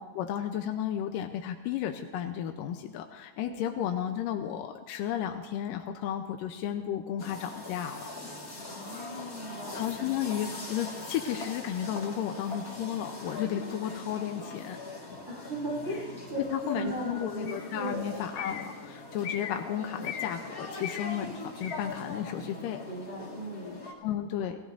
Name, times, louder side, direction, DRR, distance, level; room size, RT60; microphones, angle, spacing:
voice 1, 0.0-8.1 9.7-14.8 16.5-22.8 24.0-24.6, left 10 dB, 90° left, 5 dB, 2.4 m, -33 dB
sound 1, 7.2-23.9, left 2 dB, 30° left, 1.9 m, -42 dB
voice 2, 8.5-9.8 15.2-18.2 22.8-23.8, right 1 dB, 20° right, -7 dB, 5.1 m, -37 dB
sound 2, 15.9-16.0 17.5-17.7 18.4-18.7 19.2-19.6 20.0-20.3 20.8-21.1 21.6-21.8, left 8 dB, 65° left, 2.4 m, -38 dB
29.0 x 16.0 x 2.6 m, 1.3 s
omnidirectional pair, 3.8 m